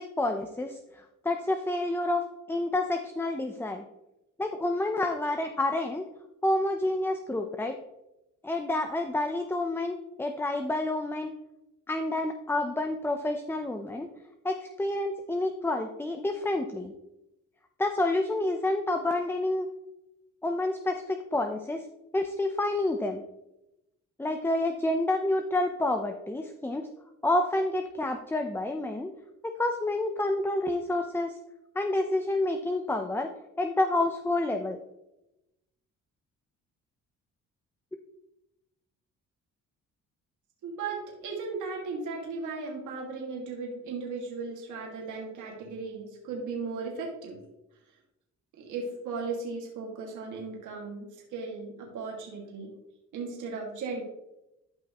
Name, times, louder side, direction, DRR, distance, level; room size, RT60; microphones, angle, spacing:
voice 1, 0.0-2.2 2.5-3.8 4.4-6.0 6.4-7.7 8.4-11.3 11.9-14.1 14.4-16.9 17.8-19.7 20.4-21.8 22.1-23.2 24.2-26.9 27.2-29.1 29.4-31.3 31.8-33.3 33.6-34.8, left 2 dB, 5° left, 5 dB, 0.6 m, -29 dB
voice 2, 40.6-47.4 48.6-52.7 53.1-54.0, right 4 dB, 80° right, -1 dB, 2.2 m, -36 dB
12.5 x 5.4 x 3.0 m, 0.91 s
cardioid pair, 90°, 30 cm